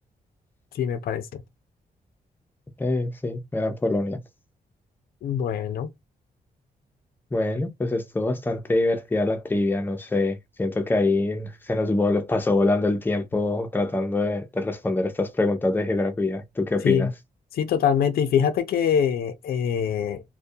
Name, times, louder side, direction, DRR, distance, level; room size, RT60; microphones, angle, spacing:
voice 1, 0.7-1.4 5.2-5.9 16.8-17.1 17.5-20.2, left 8 dB, 75° left, 0.4 m, -24 dB
voice 2, 2.8-4.2 7.3-17.1, left 2 dB, 15° left, 0.4 m, -24 dB
2.2 x 2.1 x 2.6 m
wide cardioid pair, 125°, 16 cm